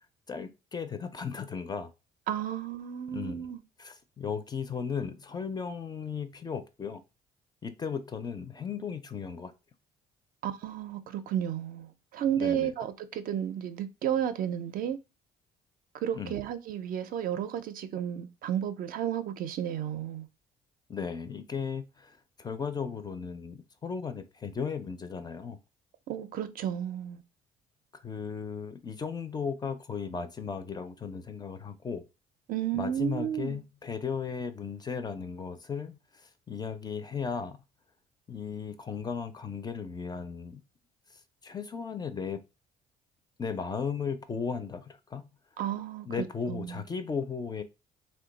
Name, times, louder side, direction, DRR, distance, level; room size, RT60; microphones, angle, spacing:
voice 1, 0.3-1.9 3.1-3.5 3.8-7.0 7.6-9.5 12.4-12.7 16.1-16.4 20.9-25.6 27.9-32.0 32.7-37.6 38.3-40.6 41.4-42.4 43.4-45.3 46.1-47.6, left 6 dB, 25° left, 0.4 m, -36 dB
voice 2, 2.3-3.6 10.4-15.0 16.0-20.3 26.1-27.2 32.5-33.6 45.6-46.8, right 10 dB, 60° right, 0.4 m, -32 dB
2.8 x 2.2 x 3.8 m
cardioid pair, 100°, 17 cm